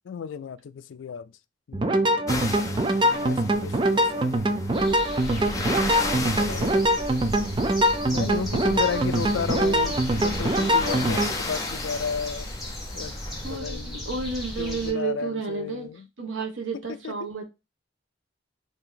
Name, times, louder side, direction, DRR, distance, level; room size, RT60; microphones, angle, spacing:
voice 1, 0.1-1.3 1.7-1.8 2.9-4.3 6.1-7.1 8.1-12.5 12.9-13.2 13.5-14.1 14.6-16.1 17.0-17.3, left 6 dB, 80° left, 0.4 m, -34 dB
sound 1, 1.7-11.3, right 1 dB, 25° right, 0.4 m, -23 dB
sound 2, 2.3-13.6, left 3 dB, 20° left, 0.6 m, -35 dB
sound 3, 4.7-14.9, equal, ahead, 1.2 m, -35 dB
voice 2, 13.4-15.9 16.2-17.4, right 4 dB, 80° right, 0.9 m, -31 dB
2.8 x 2.7 x 3.9 m
head